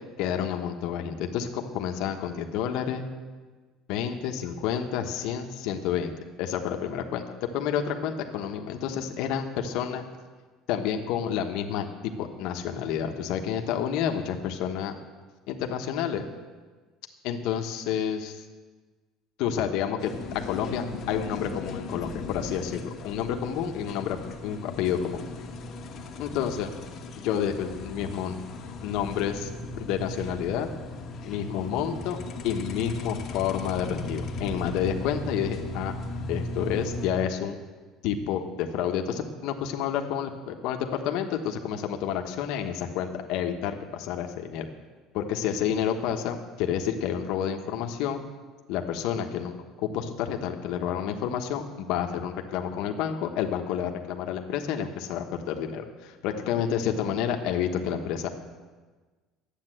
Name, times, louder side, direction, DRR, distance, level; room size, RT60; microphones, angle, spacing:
voice 1, 0.2-3.1 3.9-6.1 6.4-7.2 7.5-10.0 10.7-14.9 15.5-16.3 17.2-18.4 19.4-24.2 24.4-25.2 26.2-26.7 27.2-28.4 28.8-29.5 29.8-30.7 31.2-32.2 32.4-35.9 36.3-37.6 38.0-44.6 45.1-48.2 48.7-49.5 49.9-58.3, left 8 dB, 60° left, 4 dB, 1.2 m, -29 dB
sound 1, 20.0-37.1, left 2 dB, 35° left, 1.2 m, -37 dB
12.0 x 9.0 x 7.7 m, 1.3 s
cardioid pair, 180°, 0 cm